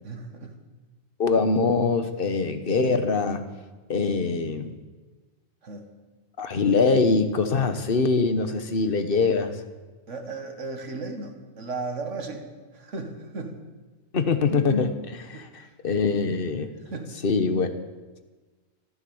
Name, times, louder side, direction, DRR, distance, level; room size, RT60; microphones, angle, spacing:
voice 1, 0.0-0.6 5.6-5.9 10.1-12.5 12.7-13.6 15.3-15.7 16.9-17.2, right 3 dB, 60° right, 5 dB, 2.0 m, -35 dB
voice 2, 1.2-3.5 3.9-4.8 6.4-9.6 14.1-16.7 17.2-17.7, left 4 dB, 45° left, 9 dB, 1.2 m, -23 dB
14.0 x 14.0 x 7.1 m, 1.3 s
omnidirectional pair, 1.4 m